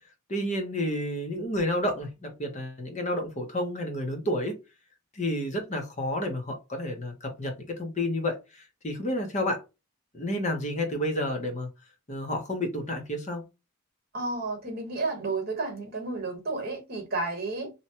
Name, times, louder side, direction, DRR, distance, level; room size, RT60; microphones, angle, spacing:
voice 1, 0.3-4.6 5.1-9.6 10.1-11.7 12.1-13.4, left 1 dB, 35° left, 0.7 m, -30 dB
voice 2, 14.1-17.7, right 3 dB, 45° right, 1.1 m, -31 dB
2.7 x 2.2 x 2.7 m
head